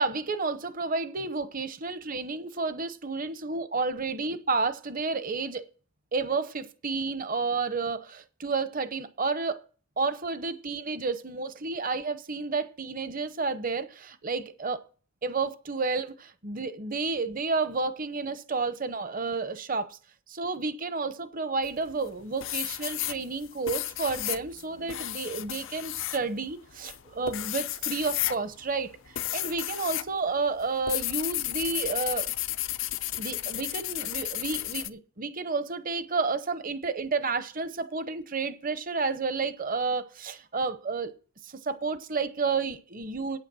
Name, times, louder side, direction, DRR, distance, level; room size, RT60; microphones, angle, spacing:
voice 1, 0.0-5.6 6.1-9.6 10.0-14.8 15.2-20.0 20.3-32.3 33.2-41.1 41.4-43.4, right 4 dB, 40° right, 0.8 m, -31 dB
sound 1, 21.6-22.1 22.4-30.1 30.4-34.9, left 14 dB, 60° left, 0.5 m, -33 dB
9.0 x 8.3 x 6.1 m
head